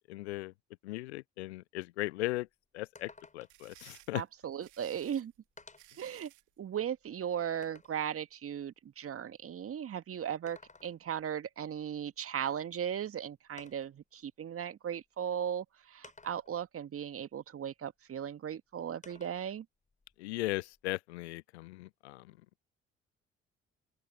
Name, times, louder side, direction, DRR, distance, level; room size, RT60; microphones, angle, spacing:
voice 1, 0.1-0.5 0.8-2.5 2.7-4.2 20.2-22.3, left 19 dB, 75° left, 0.5 m, -37 dB
sound 1, 2.5-2.6 3.0-3.7 4.8-4.9 5.6-6.0 6.6-8.0 10.3-11.2 12.7-12.8 13.6-14.0 15.0-15.1 16.0-16.7 19.0-19.5 19.9-21.0, left 3 dB, 20° left, 6.9 m, -56 dB
sound 2, 3.2-6.5, right 17 dB, 60° right, 2.3 m, -58 dB
voice 2, 4.1-5.3 6.0-6.3 6.6-19.7, right 9 dB, 40° right, 1.9 m, -37 dB
open air
figure-of-eight pair, 45°, 34 cm